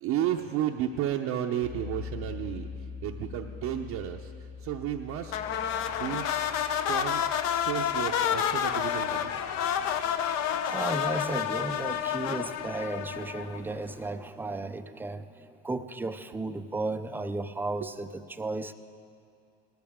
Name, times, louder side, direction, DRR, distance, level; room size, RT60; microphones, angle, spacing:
voice 1, 0.0-2.7 3.0-4.3 4.6-5.3 5.9-6.4 6.8-7.2 7.5-9.3, right 11 dB, 55° right, 1 dB, 0.8 m, -32 dB
sound 1, 1.6-10.5, left 5 dB, 70° left, 4.0 m, -44 dB
sound 2, 5.3-13.8, left 9 dB, 55° left, 0.8 m, -29 dB
voice 2, 10.7-18.7, right 2 dB, 5° right, 10 dB, 0.4 m, -34 dB
18.5 x 14.0 x 3.6 m, 2.4 s
supercardioid pair, 105°, 32 cm